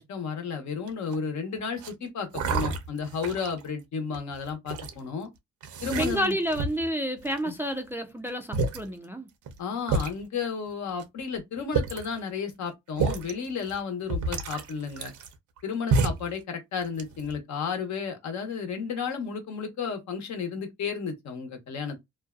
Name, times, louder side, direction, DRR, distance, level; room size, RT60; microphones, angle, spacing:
voice 1, 0.0-5.3 5.8-6.4 7.4-7.5 9.6-15.1 15.6-22.0, left 6 dB, 65° left, 0.9 m, -33 dB
sound 1, 0.9-1.3 1.8-1.9 2.3-3.6 4.1-4.9 5.6-6.9 7.3-7.8 8.3-8.4 8.5-8.8 9.5-9.6 9.9-10.1 11.0-11.1 11.6-12.1 13.0-13.3 13.7-13.8 14.1-15.6 15.9-16.3 16.8-17.4, right 4 dB, 75° right, 0.7 m, -29 dB
voice 2, 5.9-9.3, equal, 10° right, 0.3 m, -30 dB
2.6 x 2.2 x 2.3 m
cardioid pair, 90°, 30 cm